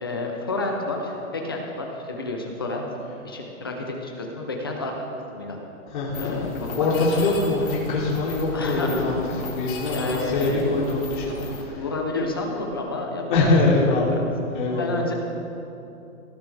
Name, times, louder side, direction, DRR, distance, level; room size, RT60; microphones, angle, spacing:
voice 1, 0.0-2.9 3.2-5.1 5.3-5.6 6.2-6.9 8.5-9.0 9.9-10.7 11.8-13.5 14.1-14.2 14.8-15.1, left 2 dB, 15° left, 1 dB, 0.6 m, -30 dB
voice 2, 5.9-6.3 6.8-11.8 13.3-14.1 14.5-14.9, left 2 dB, 35° left, -5 dB, 3.1 m, -23 dB
Mechanisms, 6.1-11.6, left 3 dB, 70° left, 3.7 m, -35 dB
18.5 x 12.5 x 3.4 m, 2.8 s
hypercardioid pair, 175°, 43 cm